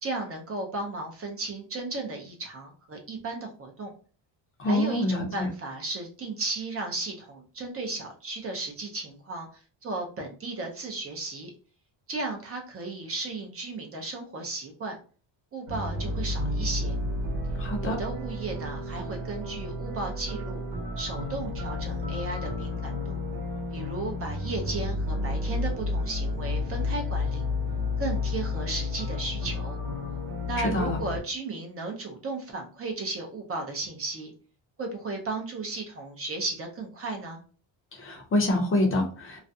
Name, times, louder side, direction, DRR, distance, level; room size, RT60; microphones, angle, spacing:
voice 1, 0.0-3.9 4.6-11.5 12.1-14.9 15.5-16.9 17.8-20.6 21.0-23.2 23.7-27.5 28.0-29.8 30.4-34.3 34.8-37.4, right 3 dB, 30° right, 2 dB, 0.5 m, -35 dB
voice 2, 4.6-5.5 17.6-18.0 30.6-31.0 37.9-39.4, left 1 dB, 30° left, 2 dB, 0.6 m, -26 dB
sound 1, 15.7-31.2, left 2 dB, 80° right, 1.0 m, -31 dB
2.4 x 2.1 x 2.6 m, 0.39 s
cardioid pair, 150°, 46 cm